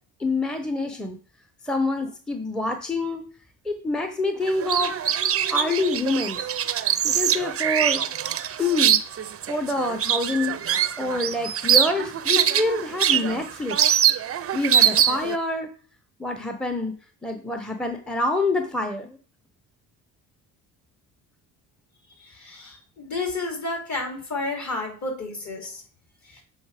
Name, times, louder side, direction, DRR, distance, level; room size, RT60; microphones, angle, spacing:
voice 1, 0.2-1.2 1.6-3.2 3.6-4.9 5.5-6.4 7.0-8.0 8.6-9.0 9.5-10.6 11.0-13.8 14.5-15.7 16.2-16.9 17.2-19.2, left 2 dB, ahead, 6 dB, 0.7 m, -26 dB
sound 1, 4.5-15.4, right 9 dB, 35° right, 0.5 m, -23 dB
voice 2, 22.2-25.8 26.2-26.4, left 2 dB, 45° left, 2 dB, 3.2 m, -31 dB
7.1 x 4.1 x 4.8 m, 0.43 s
cardioid pair, 85°, 39 cm